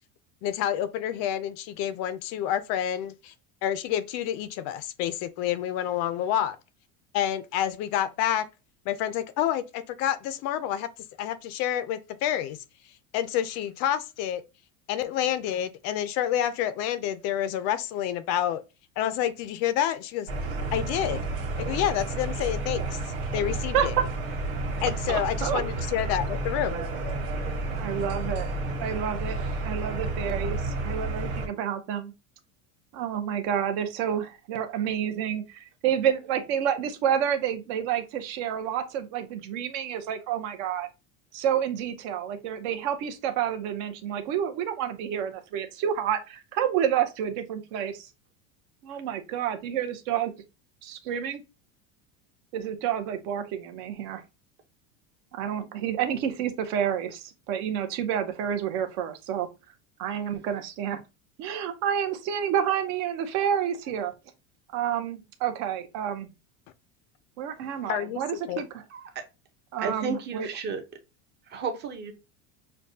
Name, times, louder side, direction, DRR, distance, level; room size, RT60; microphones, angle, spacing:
voice 1, 0.4-3.3 3.6-6.6 7.1-8.5 8.9-10.9 11.2-12.6 13.1-14.4 14.9-18.6 19.0-20.3 20.7-21.2 21.6-23.0 23.3-23.9 24.8-26.8 67.8-68.2 68.5-68.6, left 11 dB, 45° left, 0.4 m, -28 dB
sound 1, 20.3-31.5, right 2 dB, 90° right, 1.7 m, -31 dB
voice 2, 23.7-24.0 25.1-25.6 27.8-28.5 28.8-32.1 32.9-40.9 41.3-48.1 48.8-50.3 50.8-51.4 52.5-54.2 55.3-59.5 60.0-61.0 61.4-64.1 64.7-66.3 67.4-68.8 69.7-70.5, right 9 dB, 55° right, 0.9 m, -29 dB
voice 3, 69.8-70.8 71.5-72.1, right 4 dB, 30° right, 0.7 m, -32 dB
6.4 x 2.2 x 2.7 m
cardioid pair, 165°, 38 cm